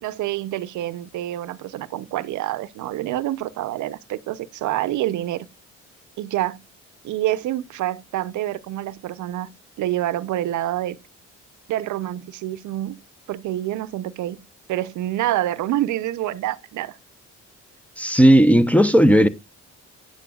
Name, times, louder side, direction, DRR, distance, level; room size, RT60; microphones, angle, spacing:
voice 1, 0.0-5.5 6.2-6.6 7.0-9.5 9.8-11.0 11.7-13.0 13.3-14.4 14.7-17.0, right 14 dB, 75° right, 0.6 m, -27 dB
voice 2, 18.0-19.3, equal, 5° left, 0.6 m, -14 dB
8.5 x 7.7 x 2.3 m
cardioid pair, 90°, 30 cm